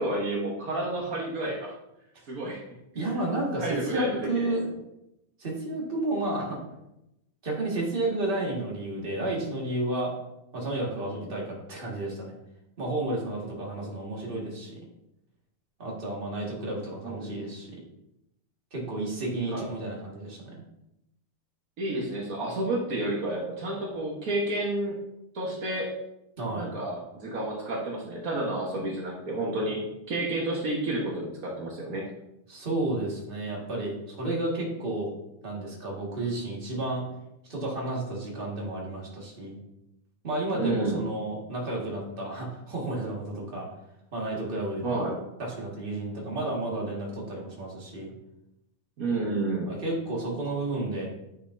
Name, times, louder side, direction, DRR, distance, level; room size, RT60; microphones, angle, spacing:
voice 1, 0.0-1.7 2.3-2.6 3.0-3.1 3.6-4.5 11.0-11.2 17.0-17.4 19.5-19.6 21.8-25.0 25.3-25.9 26.5-32.0 40.5-41.0 44.8-45.1 49.0-49.7, right 2 dB, 90° right, -3 dB, 0.7 m, -30 dB
voice 2, 2.9-4.6 5.4-6.6 7.4-10.1 10.5-12.4 12.8-14.8 15.8-17.8 18.7-20.6 26.4-26.7 32.5-35.1 35.4-37.0 37.5-39.6 40.2-43.7 44.1-44.8 45.4-48.1 49.7-51.1, right 2 dB, 25° right, -3 dB, 1.3 m, -31 dB
9.9 x 6.3 x 2.7 m, 0.86 s
omnidirectional pair, 3.5 m